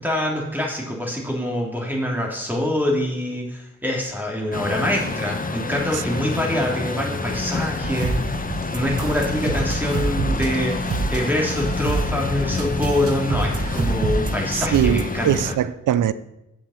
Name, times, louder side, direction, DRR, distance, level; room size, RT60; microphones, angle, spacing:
voice 1, 0.0-15.5, left 1 dB, 5° right, 2.7 m, -25 dB
Truck, 4.5-15.6, left 3 dB, 30° left, 0.9 m, -28 dB
sound 1, 7.8-15.4, right 3 dB, 50° right, 1.1 m, -27 dB
voice 2, 14.7-16.1, right 10 dB, 85° right, 0.6 m, -21 dB
7.8 x 7.2 x 6.3 m
cardioid pair, 55°, 30 cm